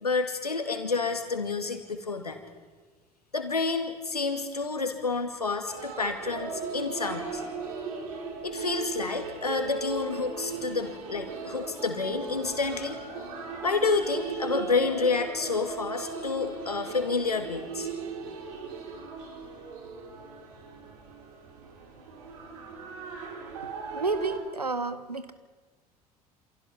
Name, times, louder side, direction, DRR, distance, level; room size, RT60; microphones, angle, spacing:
voice 1, 0.0-2.4 3.3-7.4 8.4-13.0 13.6-17.9, left 4 dB, 85° left, 6 dB, 2.4 m, -29 dB
sound 1, 5.7-24.4, right 4 dB, 65° right, 4.7 m, -38 dB
voice 2, 23.9-25.3, right 3 dB, 85° right, 12 dB, 1.4 m, -30 dB
28.0 x 27.0 x 5.7 m, 1.4 s
figure-of-eight pair, 60°, 19 cm